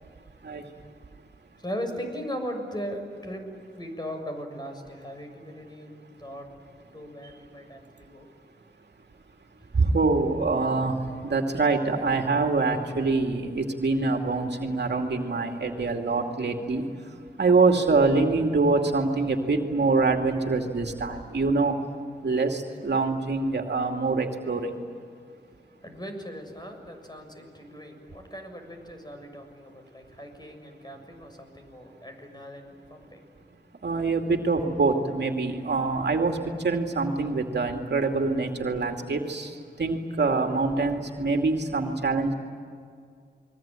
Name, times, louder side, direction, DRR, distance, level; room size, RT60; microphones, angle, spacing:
voice 1, 1.6-5.9 6.2-6.5 6.9-8.3 25.8-33.3, equal, 25° left, 7.0 m, -38 dB
voice 2, 9.7-21.8 22.2-24.8 33.8-42.3, right 3 dB, 70° right, 2.5 m, -25 dB
29.5 x 22.0 x 9.1 m
cardioid pair, 50°, 18 cm